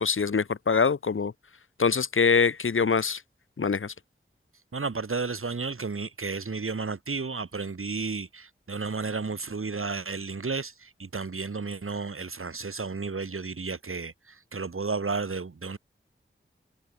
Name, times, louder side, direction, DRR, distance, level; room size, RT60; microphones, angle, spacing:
voice 1, 0.0-1.3 1.8-3.2 3.6-3.9, left 5 dB, 70° left, 1.1 m, -24 dB
voice 2, 4.7-15.8, right 4 dB, 80° right, 3.2 m, -32 dB
wide cardioid pair, 45°, 21 cm